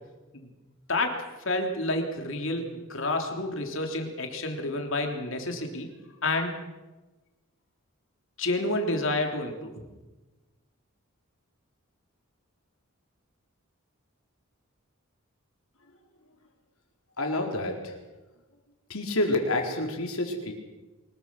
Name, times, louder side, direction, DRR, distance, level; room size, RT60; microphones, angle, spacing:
voice 1, 0.9-5.9 6.2-6.5 8.4-9.7, left 2 dB, 60° left, 3 dB, 3.4 m, -29 dB
voice 2, 17.2-18.0 18.9-20.5, left 2 dB, 80° left, 2 dB, 4.4 m, -28 dB
24.0 x 21.5 x 6.2 m, 1.1 s
head